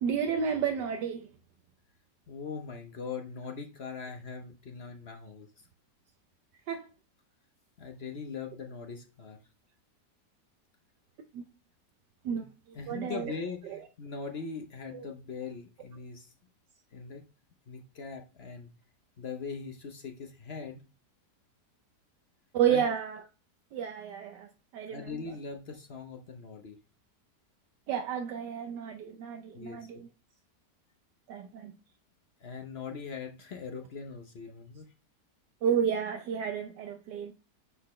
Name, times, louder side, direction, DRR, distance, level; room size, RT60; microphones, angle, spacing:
voice 1, 0.0-1.3 6.7-6.9 11.3-11.4 12.2-13.3 13.6-13.8 14.9-15.1 22.5-23.2 23.7-25.1 27.9-30.1 31.3-31.7 35.6-37.3, right 8 dB, 80° right, 1.4 m, -31 dB
voice 2, 2.3-5.5 7.8-9.4 12.3-12.4 12.7-16.3 16.9-17.2 17.7-18.7 19.2-20.9 22.7-22.8 24.9-26.8 29.5-30.0 32.4-34.9, left 5 dB, 50° left, 0.8 m, -41 dB
9.6 x 4.0 x 3.1 m
omnidirectional pair, 1.9 m